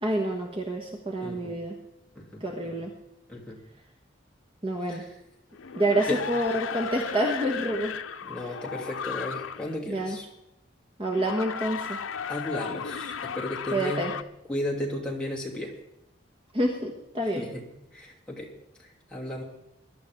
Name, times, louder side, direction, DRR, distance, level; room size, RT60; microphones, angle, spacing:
voice 1, 0.0-1.8 2.4-2.9 4.6-5.0 5.7-7.9 9.9-10.2 11.0-12.0 13.7-14.1 16.5-17.5, right 1 dB, 25° right, 1 dB, 1.4 m, -28 dB
voice 2, 1.2-1.5 2.1-2.8 3.3-3.6 4.9-5.1 6.1-6.2 8.2-10.3 12.3-14.1 14.5-15.7 17.2-17.6 17.9-18.5 19.1-19.4, left 1 dB, 5° left, -4 dB, 3.1 m, -34 dB
sound 1, 5.5-9.8 11.1-14.2, left 7 dB, 90° left, 0.6 m, -35 dB
22.0 x 11.5 x 3.7 m, 0.89 s
head